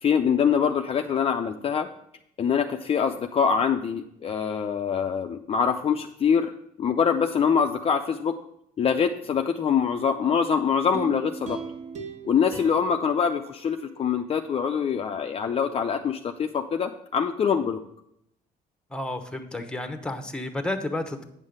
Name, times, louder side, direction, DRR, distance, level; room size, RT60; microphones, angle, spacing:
voice 1, 0.0-1.9 2.4-6.5 6.8-8.3 8.8-11.6 12.2-17.8, left 7 dB, 35° left, 5 dB, 0.5 m, -24 dB
sound 1, 10.9-14.2 14.7-14.8, right 4 dB, 45° right, 1.6 m, -39 dB
voice 2, 18.9-21.2, left 2 dB, 5° left, 8 dB, 1.0 m, -31 dB
8.8 x 5.5 x 6.5 m, 0.76 s
cardioid pair, 110°, 17 cm